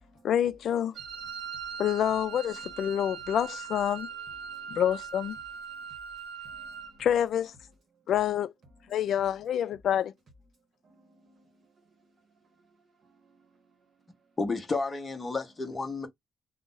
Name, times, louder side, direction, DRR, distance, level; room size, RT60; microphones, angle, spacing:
voice 1, 0.2-0.9 1.8-4.1 4.7-5.4 7.0-7.5 8.1-8.5 8.9-10.1, left 10 dB, 65° left, 0.3 m, -27 dB
Wind instrument woodwind instrument, 1.0-7.0, right 6 dB, 90° right, 0.7 m, -40 dB
voice 2, 4.3-4.8 5.7-5.8 6.4-7.1 8.9-9.0 10.8-14.3, right 2 dB, 45° right, 0.9 m, -63 dB
voice 3, 14.4-16.1, left 3 dB, 20° left, 0.8 m, -31 dB
2.5 x 2.0 x 3.7 m
cardioid pair, 160°, 0 cm